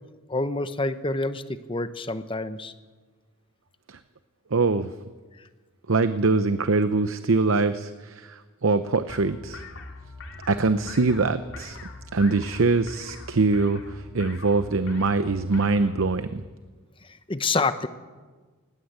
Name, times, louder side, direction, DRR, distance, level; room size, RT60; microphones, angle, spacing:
voice 1, 0.3-1.4 1.7-2.7 17.3-17.9, left 3 dB, 25° left, 11 dB, 0.9 m, -27 dB
voice 2, 4.5-4.9 5.9-9.6 10.5-11.8 12.1-16.5, right 3 dB, 75° right, 11 dB, 0.7 m, -23 dB
sound 1, 9.1-16.2, left 2 dB, 65° left, 2.8 m, -42 dB
19.0 x 18.0 x 8.0 m, 1.4 s
head